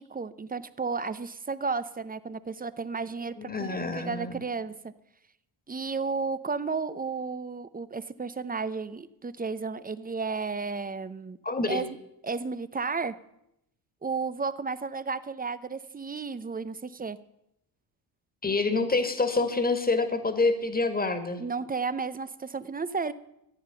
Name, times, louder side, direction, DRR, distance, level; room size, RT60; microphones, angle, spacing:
voice 1, 0.0-4.9 5.7-11.4 11.7-11.9 12.2-13.1 14.0-17.2 21.4-23.1, right 4 dB, 20° right, 15 dB, 0.6 m, -33 dB
voice 2, 3.4-4.4 11.4-11.8 18.4-21.4, left 3 dB, 20° left, 9 dB, 1.8 m, -27 dB
14.0 x 8.8 x 6.9 m, 0.82 s
cardioid pair, 75°, 45 cm